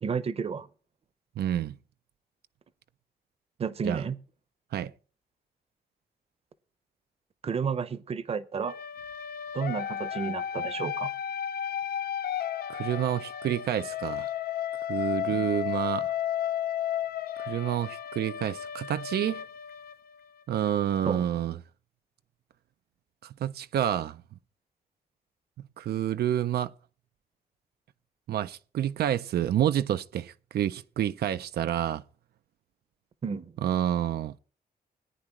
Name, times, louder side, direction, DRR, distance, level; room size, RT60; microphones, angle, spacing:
voice 1, 0.0-0.7 3.6-4.2 7.4-8.8 9.5-11.1 15.3-15.5 21.0-21.2 33.2-33.6, right 6 dB, 40° right, 0.8 m, -31 dB
voice 2, 1.4-1.8 3.8-4.0 4.7-4.9 12.7-14.3 14.9-16.1 17.4-19.4 20.5-21.6 23.2-24.2 25.8-26.7 28.3-32.0 33.6-34.4, right 11 dB, 85° right, 0.5 m, -28 dB
sound 1, 8.6-20.4, left 10 dB, 75° left, 0.6 m, -33 dB
18.0 x 9.9 x 3.0 m
wide cardioid pair, 165°, 16 cm